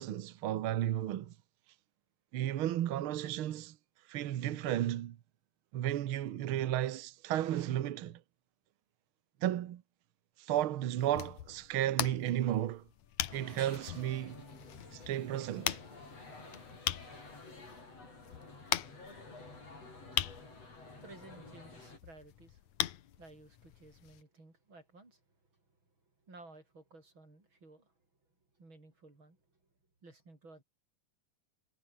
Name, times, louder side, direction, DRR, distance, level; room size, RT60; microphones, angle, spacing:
voice 1, 0.0-1.3 2.3-3.7 4.1-5.2 5.7-8.2 9.4-9.8 10.4-12.8 13.3-14.4 14.9-15.8, right 12 dB, 70° right, 1.2 m, -33 dB
sound 1, 11.0-24.2, left 12 dB, 65° left, 2.5 m, -41 dB
sound 2, 12.8-18.4, left 6 dB, 85° left, 6.1 m, -63 dB
sound 3, 13.3-22.0, left 3 dB, 50° left, 9.1 m, -51 dB
voice 2, 20.1-20.6 21.0-22.9 23.2-25.2 25.5-25.9 26.2-28.1 28.5-29.6 30.0-30.6, right 2 dB, 35° right, 7.7 m, -57 dB
omnidirectional pair, 3.8 m